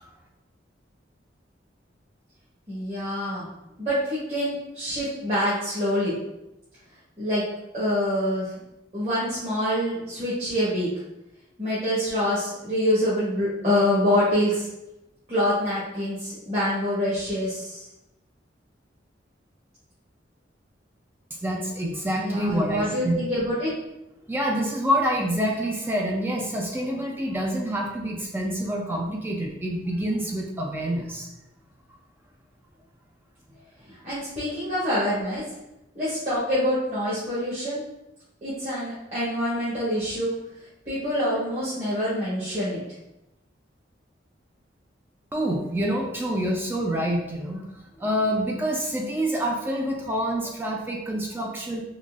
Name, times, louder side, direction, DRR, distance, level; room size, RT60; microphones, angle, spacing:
voice 1, 2.7-3.4 3.8-6.1 7.2-7.4 7.7-8.5 8.9-10.9 11.6-14.7 15.3-17.8 22.2-23.7 34.0-35.4 35.9-37.8 38.4-40.3 40.8-42.8, equal, 35° right, -11 dB, 1.3 m, -26 dB
voice 2, 21.4-23.2 24.3-31.3 45.3-47.6 48.0-51.8, equal, 10° right, 0 dB, 0.4 m, -27 dB
3.9 x 3.0 x 2.4 m, 0.91 s
head